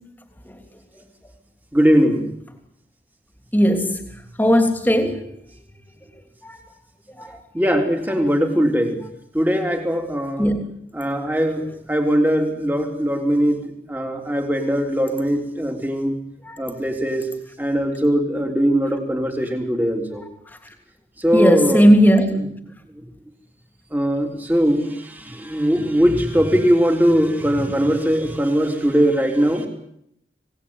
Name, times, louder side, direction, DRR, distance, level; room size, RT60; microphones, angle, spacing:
voice 1, 1.7-2.3 7.5-9.0 9.3-10.5 10.9-16.2 16.6-17.3 17.6-20.2 21.2-21.9 22.3-22.5 23.9-29.7, equal, 10° right, 3 dB, 3.6 m, -20 dB
voice 2, 3.5-4.0 4.4-5.2 6.4-6.6 7.2-7.4 10.4-10.7 16.4-16.6 21.3-22.5, equal, 10° left, 6 dB, 3.1 m, -16 dB
26.0 x 18.5 x 9.7 m, 0.76 s
head